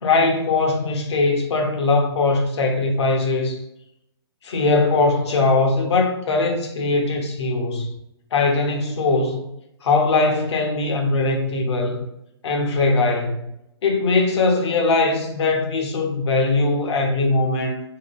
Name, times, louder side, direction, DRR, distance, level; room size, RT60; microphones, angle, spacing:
voice 1, 0.0-3.6 4.4-7.9 8.3-9.5 9.8-12.1 12.4-13.5 13.8-17.8, left 3 dB, 75° left, 0.8 m, -20 dB
3.7 x 2.3 x 2.4 m
hypercardioid pair, 130°, 14 cm